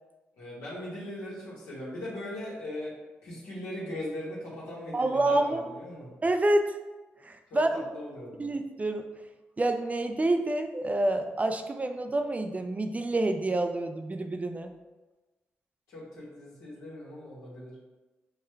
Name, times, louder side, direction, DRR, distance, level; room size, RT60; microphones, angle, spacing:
voice 1, 0.4-3.0 3.2-6.1 7.5-8.6 15.9-17.8, left 1 dB, 85° left, -6 dB, 1.5 m, -39 dB
voice 2, 4.9-5.6 6.2-6.7 7.2-7.8 8.4-9.1 9.6-14.7, right 2 dB, 30° right, 7 dB, 0.4 m, -28 dB
5.7 x 2.3 x 3.3 m, 1.2 s
supercardioid pair, 45°, 5 cm